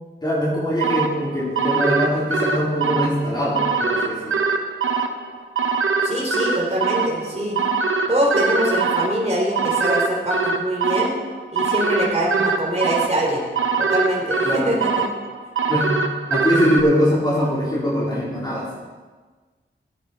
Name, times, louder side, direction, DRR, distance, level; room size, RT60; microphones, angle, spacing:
voice 1, 0.2-4.3 14.4-14.8 15.7-16.0 16.3-18.7, equal, 20° left, -8 dB, 3.9 m, -22 dB
sound 1, 0.8-16.8, right 4 dB, 85° right, 0.9 m, -23 dB
voice 2, 6.0-7.6 8.1-11.1 11.5-13.4 13.8-15.1, right 1 dB, 35° right, -4 dB, 3.5 m, -23 dB
15.0 x 8.7 x 4.3 m, 1.3 s
wide cardioid pair, 65°, 20 cm